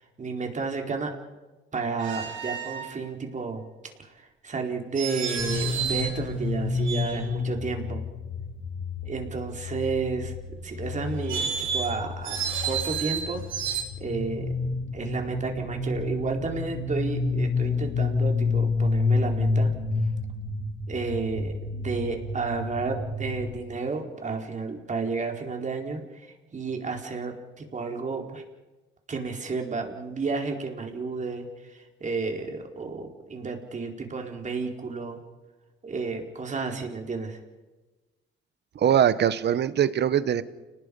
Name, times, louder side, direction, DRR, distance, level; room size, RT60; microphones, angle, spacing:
voice 1, 0.2-1.1 1.7-3.6 4.0-8.0 9.0-10.3 10.6-13.4 14.0-14.5 14.9-19.7 20.9-26.0 26.5-28.4 29.1-35.2 35.8-37.4, right 4 dB, 40° right, 2 dB, 4.6 m, -32 dB
sound 1, 2.0-2.9 5.0-6.2 6.8-7.5 11.1-13.8, right 7 dB, 75° right, 3.6 m, -31 dB
sound 2, 5.4-23.6, left 3 dB, 70° left, 2.6 m, -29 dB
voice 2, 38.7-40.4, right 9 dB, 60° right, 14 dB, 1.3 m, -22 dB
29.5 x 19.5 x 5.5 m, 1.2 s
cardioid pair, 90°, 20 cm